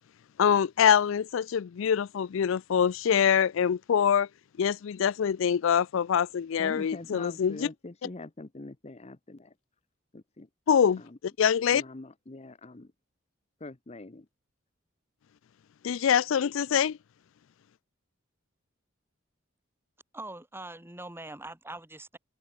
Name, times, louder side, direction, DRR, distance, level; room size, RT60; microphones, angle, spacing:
voice 1, 0.4-4.3 4.6-7.6 10.7-11.0 11.4-11.8 15.8-17.0, left 8 dB, 70° left, 0.4 m, -24 dB
voice 2, 6.6-9.5 10.1-10.5 11.0-11.2 11.7-12.9 13.6-14.3, left 2 dB, 30° left, 0.9 m, -43 dB
voice 3, 20.1-22.2, right 2 dB, 10° right, 2.6 m, -42 dB
open air
head